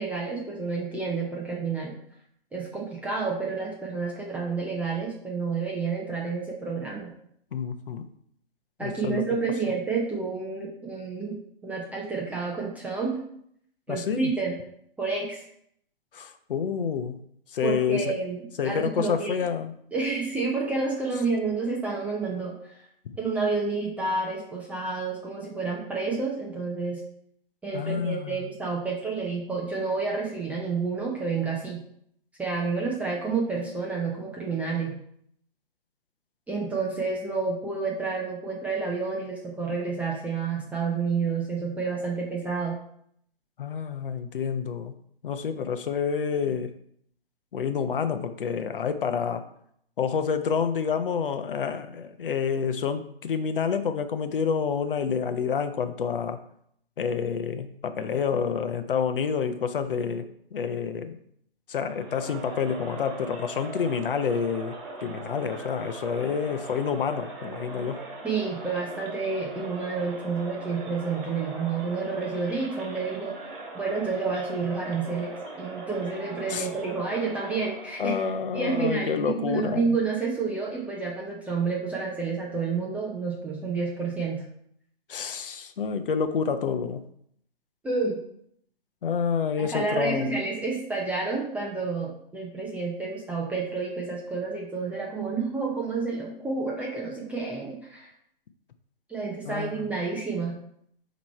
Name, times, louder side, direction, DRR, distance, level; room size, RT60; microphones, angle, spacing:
voice 1, 0.0-2.0 2.5-7.1 8.8-13.2 13.9-14.6 15.0-15.4 17.6-19.3 19.9-22.9 23.2-27.0 27.6-31.8 32.4-34.9 36.5-42.8 68.2-73.3 73.7-78.2 78.5-84.4 87.8-88.2 89.6-98.1 99.1-100.5, right 4 dB, 5° right, -4 dB, 0.6 m, -29 dB
voice 2, 7.5-8.0 8.8-9.2 13.9-14.3 16.1-17.2 17.5-18.2 18.6-19.7 27.7-28.5 43.6-44.9 45.2-46.7 47.5-49.5 50.0-56.4 57.0-61.2 61.7-64.7 65.0-68.0 76.5-76.7 78.0-80.0 85.1-87.0 89.0-90.4 99.5-99.9, left 6 dB, 60° left, 9 dB, 0.7 m, -28 dB
Crowd, 61.8-78.1, right 3 dB, 35° right, 2.3 m, -40 dB
8.8 x 3.1 x 4.2 m, 0.68 s
figure-of-eight pair, 130°, 30 cm